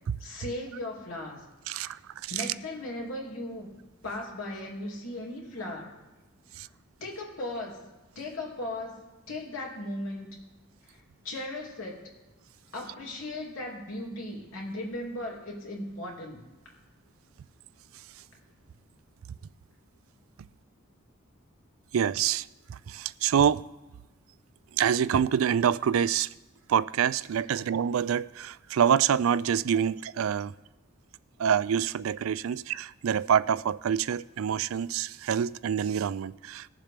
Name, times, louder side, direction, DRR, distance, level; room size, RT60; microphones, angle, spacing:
voice 1, 0.2-1.4 1.7-1.9 2.3-3.7 4.0-5.9 7.0-7.9 8.1-9.0 9.3-10.4 10.9-11.0 11.2-12.1 12.7-16.4 16.6-16.7 27.5-27.6, left 1 dB, 80° left, 2.9 m, -37 dB
voice 2, 1.7-2.5 6.5-6.7 21.9-23.6 24.7-26.3 26.7-30.5 31.4-36.7, right 8 dB, 75° right, 0.4 m, -26 dB
20.0 x 7.3 x 3.4 m
head